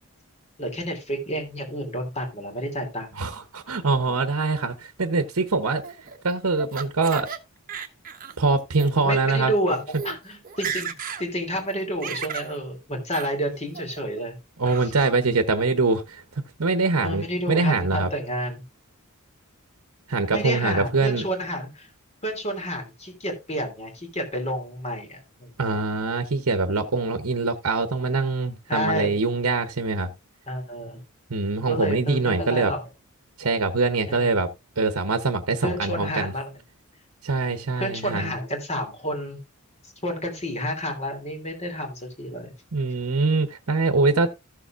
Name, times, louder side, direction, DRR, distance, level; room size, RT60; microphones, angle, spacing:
voice 1, 0.6-3.1 4.1-4.2 9.0-10.9 11.2-14.4 14.8-14.9 17.0-18.6 20.3-21.9 22.2-25.5 28.7-29.2 30.5-31.0 31.7-32.8 34.1-34.3 35.6-36.5 37.4-39.4 39.8-42.5, equal, 30° left, 3.0 m, -30 dB
voice 2, 3.2-5.8 6.2-7.3 8.4-9.5 14.6-18.1 20.1-21.2 25.6-30.1 31.3-32.7 33.4-34.5 34.8-36.3 37.2-38.3 42.7-44.3, right 3 dB, 70° right, 0.9 m, -23 dB
Laughter, 5.8-7.4 7.7-8.4 8.7-8.9 9.6-9.7 9.9-10.2 10.4-11.2 11.6-12.5 13.1-13.3 13.7-14.2 14.6-15.1, right 7 dB, 40° right, 1.1 m, -34 dB
14.5 x 7.0 x 2.5 m
head